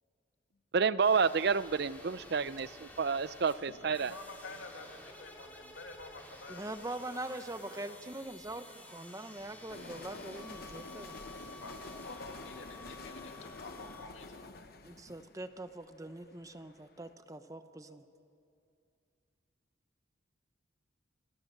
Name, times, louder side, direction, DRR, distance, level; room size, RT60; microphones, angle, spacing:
voice 1, 0.7-4.1, right 5 dB, 55° right, 0.5 m, -29 dB
sound 1, 1.0-14.1, left 1 dB, 10° left, 2.5 m, -53 dB
sound 2, 1.4-11.6, right 1 dB, 85° right, 6.8 m, -64 dB
voice 2, 3.7-6.7 7.3-8.0 11.3-11.8 12.0-14.7 15.9-16.0 16.5-16.9 17.4-18.0, left 3 dB, 90° left, 2.3 m, -50 dB
voice 3, 6.5-11.2 14.8-18.1, right 2 dB, 15° right, 0.7 m, -43 dB
sound 3, 9.7-16.7, left 3 dB, 50° left, 1.0 m, -48 dB
28.0 x 16.5 x 6.6 m
head